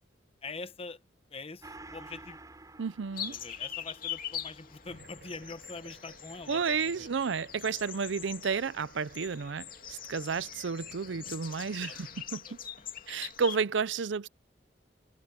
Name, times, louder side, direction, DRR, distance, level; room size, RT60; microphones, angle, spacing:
voice 1, 0.4-1.0 1.3-2.4 3.2-7.1 10.2-10.5 11.9-12.9, left 3 dB, 35° left, 1.0 m, -45 dB
Gong, 1.6-10.6 10.9-11.0, right 2 dB, 20° right, 5.1 m, -55 dB
voice 2, 2.8-3.4 6.5-12.4 13.1-14.3, right 5 dB, 80° right, 0.5 m, -32 dB
sound 1, 3.1-13.6, left 9 dB, 50° left, 2.7 m, -43 dB
sound 2, 4.8-12.0, right 2 dB, 60° right, 6.6 m, -56 dB
head